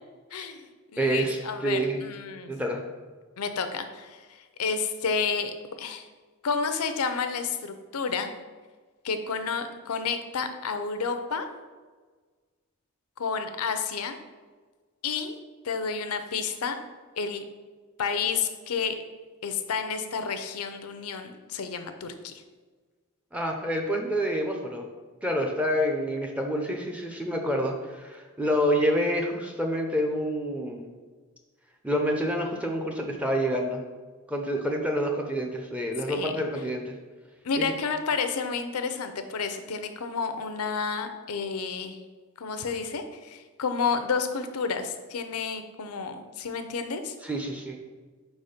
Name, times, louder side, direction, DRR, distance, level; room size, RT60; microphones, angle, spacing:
voice 1, 0.3-0.6 0.9-2.5 3.4-4.3 4.6-6.1 6.4-8.3 9.0-11.5 13.2-14.2 15.0-15.3 15.6-16.8 17.2-17.4 18.0-18.9 19.4-22.4 36.1-36.3 37.4-42.0 42.4-47.1, left 5 dB, 85° left, 8 dB, 0.6 m, -30 dB
voice 2, 1.0-2.0 2.5-2.8 23.3-24.8 25.2-30.9 31.8-33.8 34.3-36.9 37.6-37.7 47.2-47.8, equal, 5° right, 2 dB, 0.5 m, -28 dB
4.7 x 4.2 x 5.0 m, 1.4 s
head